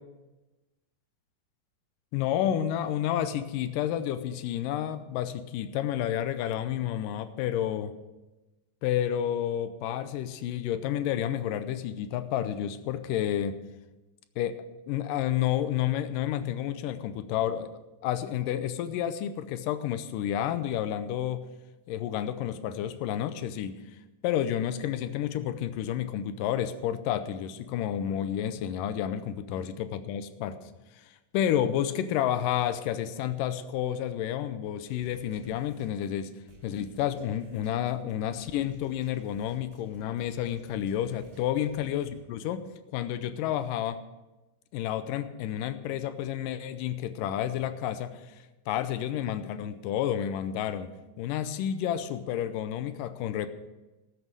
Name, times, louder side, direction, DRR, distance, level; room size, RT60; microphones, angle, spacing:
voice 1, 2.1-8.0 8.8-13.6 14.4-17.7 18.0-21.4 21.9-23.8 24.2-30.6 31.3-36.3 36.6-44.0 44.7-48.3 48.7-50.9 51.2-53.5, left 10 dB, 75° left, 11 dB, 2.0 m, -30 dB
sound 1, 34.9-42.2, right 2 dB, 45° right, 3.8 m, -56 dB
13.5 x 9.6 x 6.2 m, 1.1 s
omnidirectional pair, 4.5 m